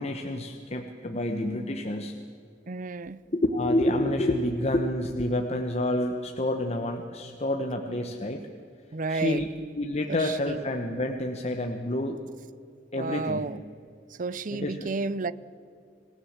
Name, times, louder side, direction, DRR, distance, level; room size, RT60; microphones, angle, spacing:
voice 1, 0.0-2.2 3.3-8.4 9.1-9.5 9.7-12.2 12.9-13.5 14.5-14.9, left 1 dB, 35° left, 1.1 m, -28 dB
voice 2, 2.7-3.2 8.9-9.5 10.1-10.6 13.0-13.6 14.1-15.3, right 3 dB, 45° right, 0.6 m, -32 dB
26.0 x 16.5 x 7.3 m
head